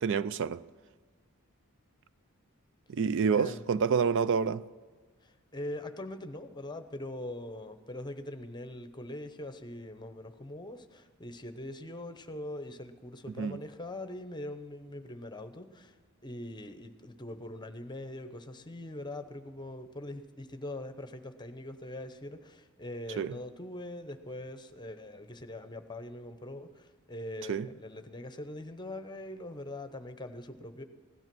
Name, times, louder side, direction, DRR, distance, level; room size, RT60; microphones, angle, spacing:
voice 1, 0.0-0.6 2.9-4.6 13.4-13.6 23.2-23.3 27.5-27.7, right 6 dB, 60° right, 0.4 m, -28 dB
voice 2, 3.3-3.6 5.2-16.0 16.2-30.8, left 1 dB, 20° left, 0.9 m, -42 dB
16.5 x 12.0 x 6.1 m
head